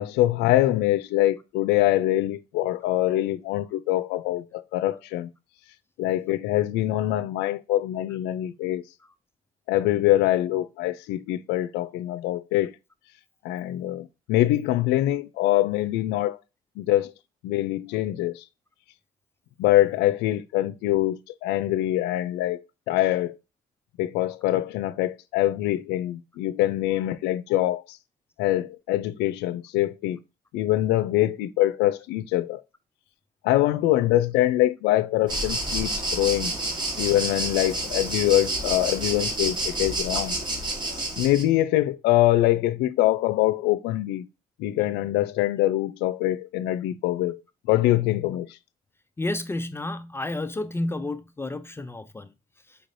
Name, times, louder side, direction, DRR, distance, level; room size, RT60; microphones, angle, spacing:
voice 1, 0.0-5.3 6.0-8.8 9.7-12.7 13.4-16.4 16.8-17.1 17.4-18.3 19.6-22.6 22.9-23.3 24.0-27.8 28.4-30.2 30.5-32.6 33.4-36.5 37.0-40.3 41.2-44.3 44.6-47.4 47.7-48.5, left 15 dB, 90° left, 0.4 m, -24 dB
sound 1, 35.3-41.4, right 2 dB, 25° right, 1.5 m, -29 dB
voice 2, 49.2-52.3, left 2 dB, 15° left, 0.3 m, -31 dB
4.8 x 3.2 x 2.6 m
cardioid pair, 110°, 17 cm